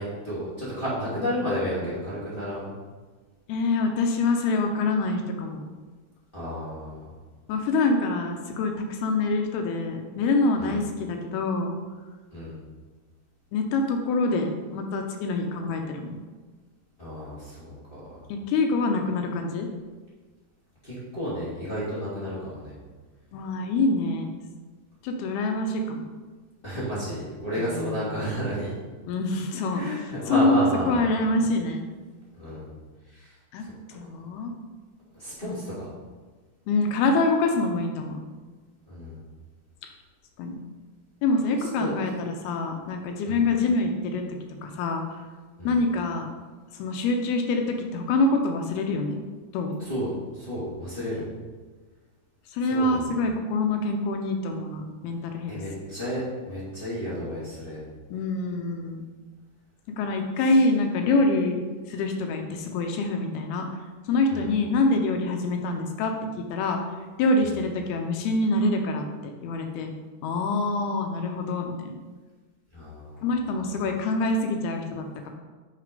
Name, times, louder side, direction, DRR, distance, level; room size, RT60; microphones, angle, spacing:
voice 1, 0.0-2.7 6.3-7.1 10.6-10.8 12.3-12.6 17.0-18.2 20.8-22.7 26.6-28.7 29.7-31.1 32.3-32.7 33.1-33.3 35.1-35.9 38.9-39.2 41.6-41.9 43.2-43.5 45.6-45.8 49.8-51.3 52.6-53.2 55.5-57.8 64.3-64.5 67.4-67.6 72.7-73.3, equal, 15° left, -9 dB, 2.0 m, -32 dB
voice 2, 3.5-5.6 7.5-11.7 13.5-16.2 18.3-19.7 23.3-24.3 25.0-26.1 27.6-28.3 29.1-31.9 33.5-33.7 33.9-34.6 35.4-35.7 36.7-38.2 40.4-40.6 41.2-44.2 44.6-45.2 45.6-46.3 46.7-49.2 49.5-49.8 52.5-55.6 58.1-59.0 60.0-61.6 61.9-63.7 64.1-66.1 66.5-66.8 67.2-69.9 70.2-71.9 73.2-75.3, left 2 dB, 80° left, 4 dB, 2.6 m, -25 dB
6.5 x 5.7 x 5.2 m, 1.3 s
omnidirectional pair, 4.6 m